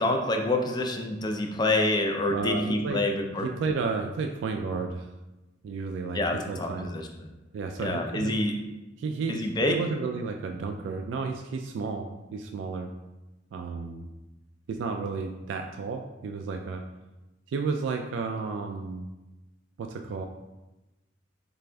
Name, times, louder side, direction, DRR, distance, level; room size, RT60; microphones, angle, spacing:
voice 1, 0.0-3.5 6.1-7.1 7.8-8.5 9.3-9.8, left 2 dB, 25° left, 3 dB, 0.4 m, -27 dB
voice 2, 2.3-3.0 3.4-5.1 5.6-6.9 7.5-8.4 9.0-12.9 13.5-14.1 14.7-16.8 17.5-19.1 19.8-20.3, right 4 dB, 85° right, 4 dB, 0.3 m, -32 dB
6.4 x 2.5 x 2.2 m, 1.1 s
head